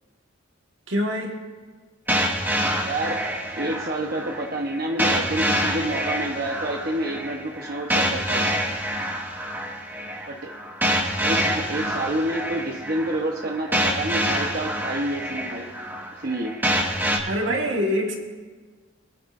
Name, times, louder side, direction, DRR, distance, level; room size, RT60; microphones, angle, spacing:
voice 1, 0.9-1.4 17.3-18.2, equal, 75° right, 0 dB, 1.9 m, -24 dB
sound 1, 2.1-17.2, equal, 10° right, 1.6 m, -26 dB
voice 2, 2.8-8.5 10.3-10.5 11.2-15.7 16.2-16.5, right 1 dB, 50° right, -1 dB, 1.1 m, -28 dB
23.5 x 10.0 x 2.7 m, 1.4 s
head